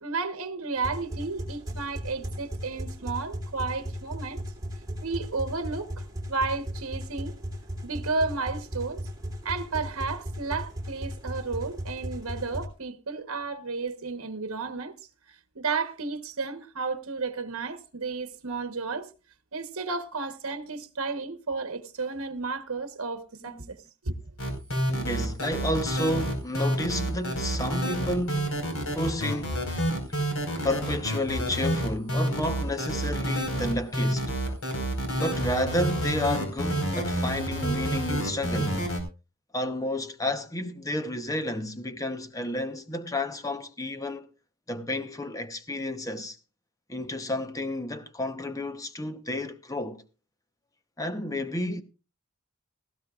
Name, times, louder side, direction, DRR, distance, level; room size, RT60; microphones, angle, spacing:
voice 1, 0.0-4.4 5.0-7.4 7.8-9.1 9.4-14.9 15.3-19.1 19.5-23.8 24.0-24.2, right 4 dB, 70° right, 1.2 m, -32 dB
sound 1, 0.8-12.7, equal, 15° right, 3.2 m, -36 dB
sound 2, 24.4-39.0, right 1 dB, 65° left, 4.7 m, -28 dB
voice 2, 24.9-28.6 28.9-29.7 30.1-30.2 30.5-34.3 35.2-38.9 39.5-44.3 44.7-46.4 46.9-50.0 51.0-51.8, left 1 dB, 15° left, 0.9 m, -31 dB
17.5 x 15.5 x 2.4 m
head